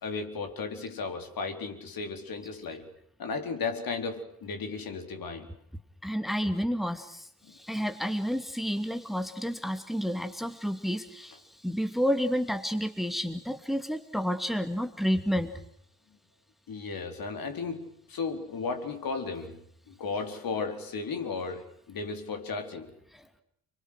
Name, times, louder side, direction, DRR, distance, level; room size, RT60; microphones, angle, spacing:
voice 1, 0.0-2.9 3.2-5.5 16.7-19.6 19.9-22.9, left 4 dB, 50° left, 6 dB, 4.2 m, -35 dB
voice 2, 6.0-15.5 23.1-23.4, equal, ahead, 8 dB, 2.7 m, -30 dB
30.0 x 23.0 x 6.5 m, 0.70 s
figure-of-eight pair, 45°, 44 cm